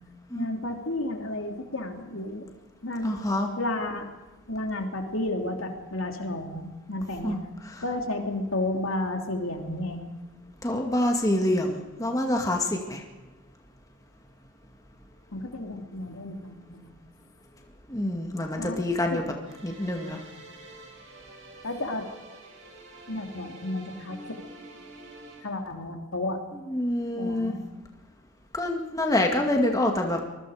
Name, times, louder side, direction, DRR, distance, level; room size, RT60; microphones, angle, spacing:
voice 1, 0.3-2.5 2.8-3.1 3.6-4.1 4.5-7.4 7.8-10.0 15.3-16.9 18.6-18.8 19.1-19.2 21.6-22.1 23.1-24.4 25.4-26.4 27.1-27.6, left 2 dB, 75° left, 3 dB, 3.0 m, -32 dB
voice 2, 3.0-3.5 7.2-7.4 7.7-7.8 10.6-13.0 17.9-19.2 19.6-20.2 26.7-27.6 28.5-30.3, left 1 dB, 15° left, 2 dB, 2.1 m, -26 dB
sound 1, 19.4-25.4, right 2 dB, 65° right, 6.1 m, -47 dB
25.5 x 20.5 x 5.1 m, 1.2 s
head